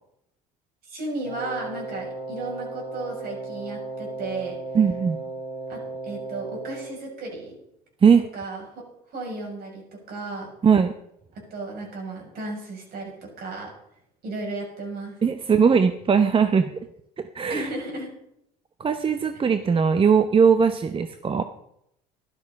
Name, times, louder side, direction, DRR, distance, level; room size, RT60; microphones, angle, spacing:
voice 1, 0.8-4.6 5.7-7.6 8.3-8.8 9.1-10.5 11.5-13.7 14.2-15.2 17.5-18.1, right 2 dB, 60° right, 0 dB, 6.6 m, -34 dB
Wind instrument woodwind instrument, 1.2-7.0, right 3 dB, 5° right, 3.6 m, -35 dB
voice 2, 4.7-5.2 8.0-8.2 10.6-10.9 15.2-16.9 17.2-17.7 18.8-21.4, right 6 dB, 30° right, 9 dB, 0.8 m, -20 dB
12.5 x 12.0 x 5.4 m, 0.77 s
supercardioid pair, 80°, 18 cm